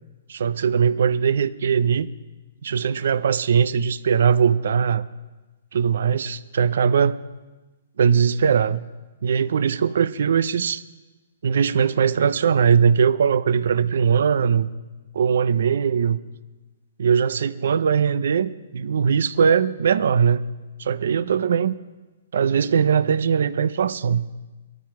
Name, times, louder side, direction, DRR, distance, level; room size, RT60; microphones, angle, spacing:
voice 1, 0.3-2.1 2.6-5.1 5.7-7.2 8.0-8.9 9.2-10.8 11.4-14.7 15.1-16.2 17.0-20.5 20.8-21.8 22.3-24.3, right 7 dB, 70° right, 17 dB, 0.6 m, -20 dB
19.0 x 13.5 x 4.7 m, 1.2 s
hypercardioid pair, 160°, 0 cm